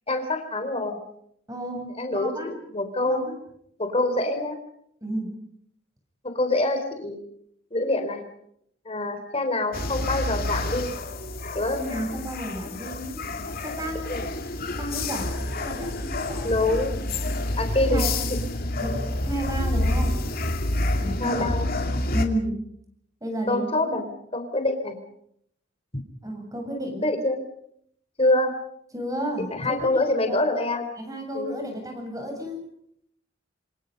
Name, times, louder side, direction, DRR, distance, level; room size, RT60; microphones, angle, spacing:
voice 1, 0.1-1.0 2.0-3.3 3.8-4.6 6.2-7.2 7.7-8.2 8.9-10.9 11.5-12.1 14.1-14.3 16.4-16.9 17.6-18.1 21.2-21.7 23.5-25.0 27.0-27.4 28.2-28.5 29.5-30.9 31.3-31.5, left 2 dB, 30° left, 6 dB, 4.1 m, -25 dB
voice 2, 1.5-2.5 3.1-3.3 5.0-5.3 11.7-13.2 13.6-14.3 14.8-16.6 17.8-18.2 18.8-18.9 19.3-20.1 21.0-21.5 22.1-22.6 23.2-24.0 26.2-27.0 28.9-30.4 30.9-32.6, equal, 20° right, 3 dB, 7.9 m, -32 dB
sound 1, 9.7-22.3, left 1 dB, 50° left, 2.8 m, -28 dB
27.0 x 26.0 x 5.4 m, 0.71 s
head